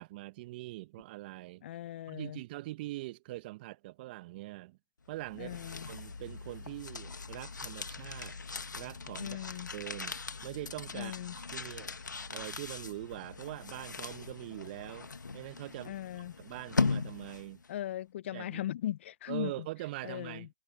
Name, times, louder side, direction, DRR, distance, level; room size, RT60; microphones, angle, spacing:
voice 1, 0.0-1.6 2.1-4.8 5.1-5.6 5.8-8.4 8.8-9.4 9.7-10.2 10.4-11.2 11.5-11.9 12.3-17.6 18.3-18.7 19.3-20.5, right 18 dB, 30° right, 0.9 m, -43 dB
voice 2, 1.6-2.4 5.4-5.9 9.2-9.7 10.9-11.4 15.8-16.4 17.7-19.5 20.0-20.5, left 12 dB, 40° left, 0.6 m, -38 dB
sound 1, 5.1-17.7, left 4 dB, 80° left, 1.7 m, -39 dB
figure-of-eight pair, 140°, 10 cm